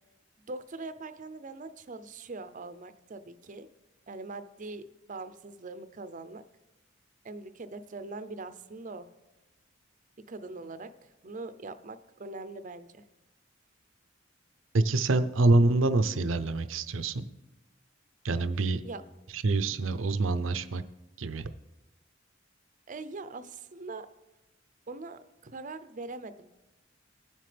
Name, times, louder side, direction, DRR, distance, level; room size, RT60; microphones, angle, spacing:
voice 1, 0.4-3.7 4.1-6.4 7.2-9.1 10.3-13.0 18.8-19.0 19.7-19.8 22.9-24.1 24.9-26.5, right 3 dB, 40° right, 11 dB, 0.6 m, -42 dB
voice 2, 14.7-17.3 18.2-18.8 19.3-20.8 21.2-21.5, right 2 dB, 85° right, 12 dB, 0.6 m, -26 dB
18.5 x 7.6 x 3.4 m, 1.1 s
head